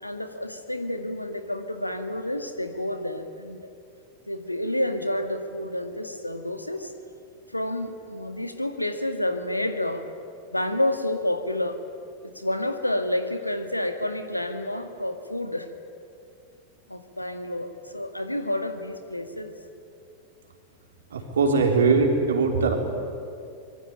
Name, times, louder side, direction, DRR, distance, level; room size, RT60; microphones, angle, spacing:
voice 1, 0.0-3.7 4.3-6.9 7.5-10.1 10.5-11.8 12.4-15.7 16.9-19.5, left 1 dB, 85° left, 8 dB, 1.9 m, -29 dB
voice 2, 21.1-22.7, right 4 dB, 65° right, 3 dB, 4.0 m, -21 dB
25.0 x 22.5 x 10.0 m, 2.5 s
figure-of-eight pair, 90°, 0 cm